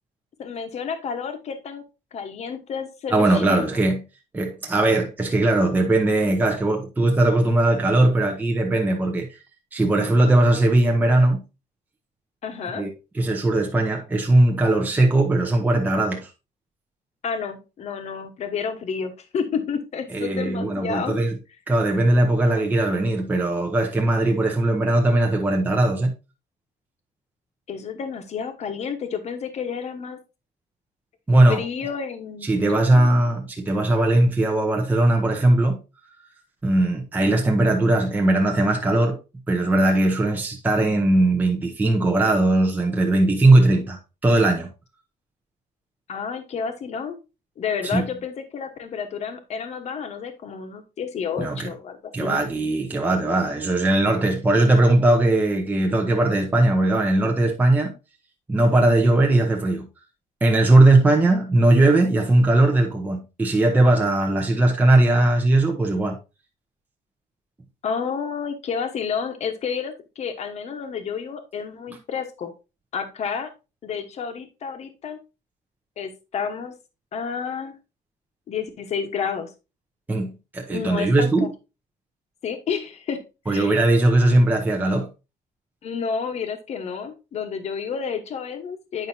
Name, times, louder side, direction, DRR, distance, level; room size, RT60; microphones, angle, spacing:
voice 1, 0.4-1.8 2.1-3.7 12.4-12.8 17.2-21.2 27.7-30.2 31.5-33.3 46.1-47.2 47.6-52.4 67.8-72.5 72.9-73.5 73.8-75.2 76.0-76.7 77.1-77.7 78.5-79.5 80.7-81.5 82.4-83.7 85.8-89.1, left 6 dB, 45° left, 1.1 m, -30 dB
voice 2, 3.1-4.0 4.3-9.3 9.7-11.4 12.8-12.9 13.1-16.3 20.1-21.4 21.7-26.1 31.3-31.6 32.4-35.8 36.6-39.2 39.5-44.7 47.8-48.1 51.4-51.7 52.1-57.9 58.5-59.9 60.4-66.2 80.1-81.5 83.5-85.1, right 2 dB, 10° right, 0.7 m, -19 dB
8.9 x 5.5 x 2.7 m
cardioid pair, 170°, 16 cm